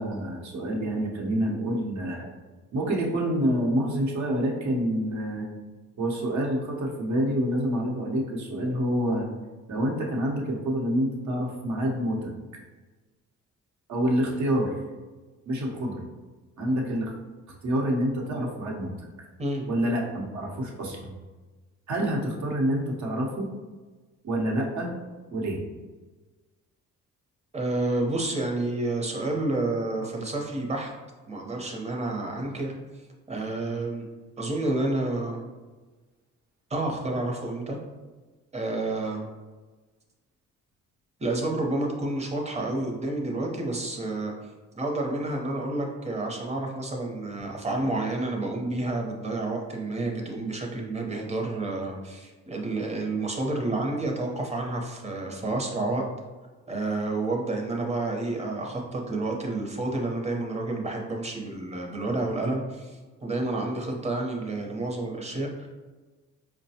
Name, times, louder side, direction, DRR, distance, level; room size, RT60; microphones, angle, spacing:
voice 1, 0.0-2.3 2.7-5.5 6.0-9.3 9.7-12.3 13.9-14.7 15.5-16.0 16.6-17.1 17.6-18.9 19.7-21.1 21.9-23.5 24.2-24.9 25.3-25.6, equal, 65° right, -1 dB, 0.9 m, -27 dB
voice 2, 27.5-30.9 31.3-32.7 33.3-34.1 34.4-35.4 36.7-37.8 38.5-39.2 41.2-44.3 44.7-56.0 56.7-65.7, right 2 dB, 20° right, 1 dB, 0.8 m, -29 dB
4.7 x 2.2 x 2.8 m, 1.3 s
cardioid pair, 90°, 30 cm